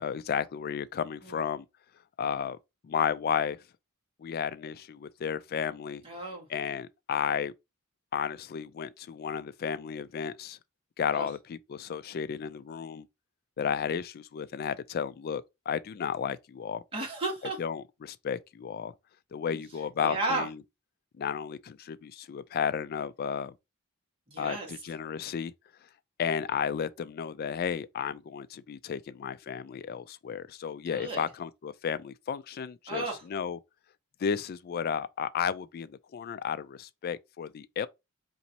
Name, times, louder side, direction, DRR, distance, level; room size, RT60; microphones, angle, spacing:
voice 1, 0.0-1.7 2.2-2.6 2.8-3.6 4.2-6.0 6.5-7.5 8.1-10.6 11.0-13.1 13.6-16.8 17.6-18.9 19.3-20.6 21.2-23.5 24.4-25.5 26.2-33.6 34.2-37.9, left 7 dB, 45° left, 0.3 m, -33 dB
voice 2, 6.0-6.5 11.1-11.3 16.9-17.6 19.5-19.6 20.0-20.5 24.3-24.7 30.8-31.2 32.9-33.2, right 2 dB, 25° right, 1.6 m, -33 dB
4.0 x 3.0 x 2.8 m
head